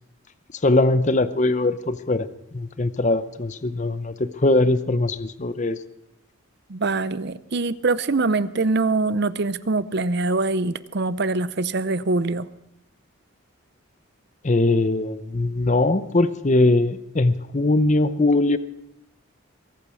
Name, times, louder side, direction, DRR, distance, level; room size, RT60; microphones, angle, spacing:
voice 1, 0.6-2.3 2.5-5.8 14.4-18.6, left 2 dB, 35° left, 13 dB, 0.6 m, -21 dB
voice 2, 6.7-12.5, right 3 dB, 50° right, 16 dB, 0.6 m, -23 dB
22.5 x 8.8 x 6.3 m, 0.81 s
head